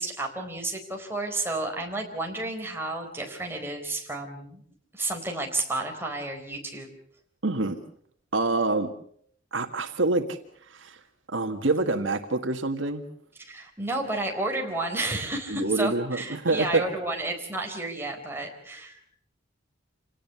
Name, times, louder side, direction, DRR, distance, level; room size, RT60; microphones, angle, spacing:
voice 1, 0.0-4.6 4.9-6.9 13.5-19.0, right 2 dB, 10° right, 2 dB, 4.2 m, -31 dB
voice 2, 7.4-7.8 8.3-8.9 9.5-10.3 10.7-11.0 11.3-13.0 15.5-16.8, right 2 dB, 75° right, 6 dB, 1.8 m, -26 dB
28.0 x 18.5 x 7.0 m, 0.63 s
head